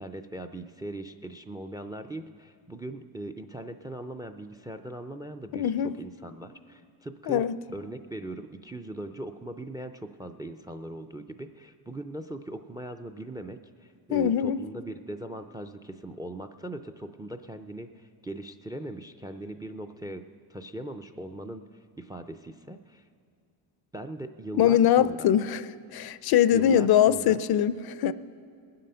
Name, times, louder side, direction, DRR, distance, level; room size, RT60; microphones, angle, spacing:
voice 1, 0.0-5.7 6.0-7.4 7.7-20.2 20.5-21.7 22.0-23.0 23.9-25.3 26.5-27.4, right 1 dB, 10° right, 0.3 m, -40 dB
voice 2, 5.5-6.0 7.3-7.6 14.1-14.6 24.6-25.7 25.9-28.1, left 10 dB, 55° left, 0.5 m, -22 dB
20.0 x 7.7 x 5.6 m
cardioid pair, 95°, 45 cm